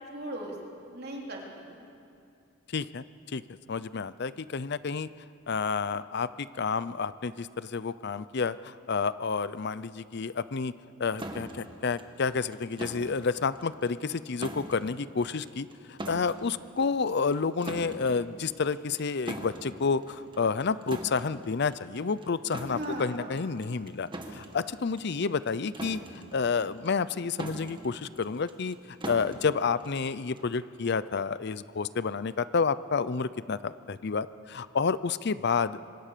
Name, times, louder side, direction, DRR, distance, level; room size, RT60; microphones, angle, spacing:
voice 1, 0.1-1.9 22.7-23.3, right 1 dB, 50° right, -1 dB, 4.0 m, -38 dB
voice 2, 2.7-3.4 3.7-5.1 5.5-10.7 11.0-26.0 26.3-28.8 29.1-35.9, left 5 dB, 50° left, 15 dB, 0.6 m, -30 dB
sound 1, 11.2-30.6, right 1 dB, 25° right, 1.8 m, -43 dB
26.5 x 24.0 x 6.8 m, 2.6 s
head